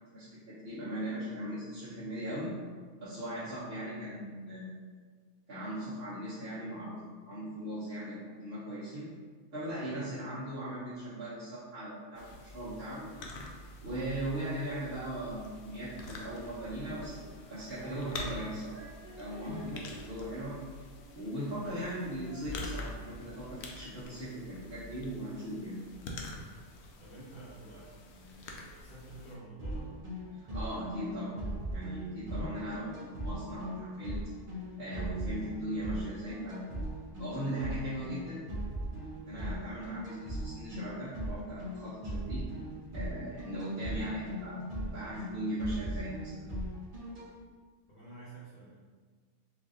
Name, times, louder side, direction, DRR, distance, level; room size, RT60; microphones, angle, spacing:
voice 1, 0.1-2.5 3.0-4.7 5.5-7.0 7.3-9.1 9.5-13.0 13.8-17.2 17.5-18.8 19.2-20.5 21.1-25.8 30.5-31.3 31.7-34.2 34.8-36.7 37.2-38.4 39.2-42.4 42.9-46.3, right 1 dB, 50° right, -13 dB, 1.2 m, -38 dB
sound 1, 12.2-29.4, left 2 dB, 65° left, 0.7 m, -46 dB
Female singing, 17.7-24.1 24.7-24.8, equal, 85° right, 1.1 m, -54 dB
voice 2, 27.0-29.9 47.9-48.8, right 2 dB, 40° left, -11 dB, 0.9 m, -50 dB
sound 2, 29.6-47.3, equal, 35° right, 0.7 m, -39 dB
3.2 x 2.5 x 3.7 m, 1.6 s
omnidirectional pair, 1.3 m